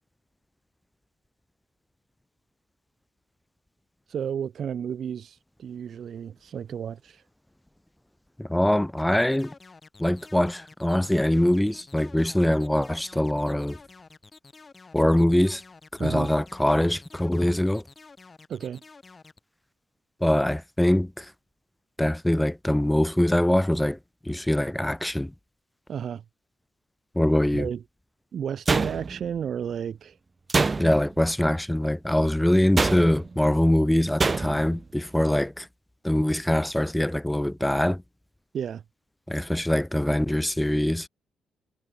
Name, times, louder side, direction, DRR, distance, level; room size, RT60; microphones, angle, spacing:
voice 1, 4.1-7.2 16.0-16.3 18.5-18.8 25.9-26.2 27.5-27.8 28.3-30.2 38.5-38.8, right 8 dB, 55° right, 4.6 m, -32 dB
voice 2, 8.4-9.5 10.0-13.8 14.9-15.6 16.0-17.8 20.2-21.3 22.0-25.3 27.1-27.7 30.8-35.7 36.0-38.0 39.3-41.1, left 1 dB, 5° left, 0.7 m, -23 dB
sound 1, 9.0-19.4, left 4 dB, 30° left, 5.6 m, -50 dB
sound 2, 28.7-29.4 30.5-31.2 32.8-33.3 34.2-34.7, right 3 dB, 25° right, 1.3 m, -25 dB
cardioid pair, 90°, 0 cm